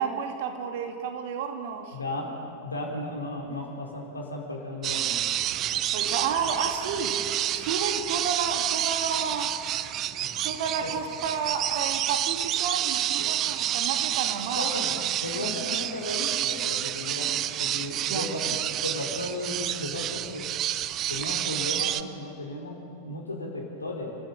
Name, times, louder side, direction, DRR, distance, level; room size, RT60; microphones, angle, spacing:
voice 1, 0.0-2.0 5.9-7.2 7.5-9.5 10.4-14.7 15.3-15.5 18.1-18.3, right 6 dB, 50° right, 4 dB, 2.6 m, -31 dB
voice 2, 1.9-2.4 2.6-5.3 10.2-10.4 10.8-10.9 13.2-13.5 14.5-14.9 15.2-20.5 21.1-24.1, left 2 dB, 80° left, -1 dB, 4.3 m, -35 dB
sound 1, 4.8-22.0, right 12 dB, 35° right, 0.7 m, -29 dB
30.0 x 15.0 x 7.3 m, 2.7 s
figure-of-eight pair, 90°, 0 cm